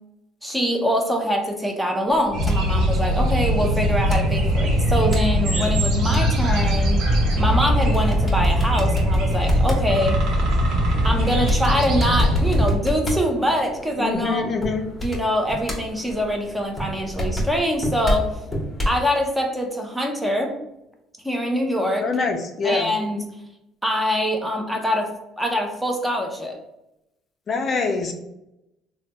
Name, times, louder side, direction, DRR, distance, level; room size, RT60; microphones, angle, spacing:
voice 1, 0.4-7.1 7.4-10.2 11.0-14.7 15.0-18.4 18.9-20.5 21.2-22.1 22.6-23.2 23.8-26.6, equal, 5° right, 2 dB, 0.6 m, -24 dB
sound 1, 2.1-19.0, left 1 dB, 10° left, 1.0 m, -30 dB
sound 2, 2.3-12.8, equal, 70° right, 0.8 m, -21 dB
voice 2, 14.0-14.8 22.0-22.9 27.5-28.1, left 4 dB, 40° left, 3 dB, 0.4 m, -24 dB
3.1 x 2.2 x 2.9 m, 0.87 s
cardioid pair, 105°, 0 cm